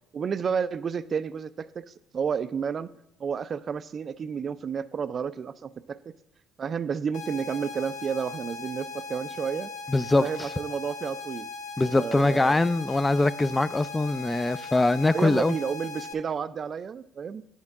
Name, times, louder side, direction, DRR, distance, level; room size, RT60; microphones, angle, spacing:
voice 1, 0.1-2.9 3.2-6.1 6.6-9.7 10.2-11.5 11.9-12.6 15.1-17.4, right 6 dB, 45° right, 0.4 m, -31 dB
sound 1, 7.1-16.1, left 4 dB, 70° left, 0.7 m, -39 dB
voice 2, 9.9-10.5 11.8-15.5, left 2 dB, 20° left, 0.4 m, -23 dB
9.7 x 3.6 x 5.8 m
hypercardioid pair, 60°, 0 cm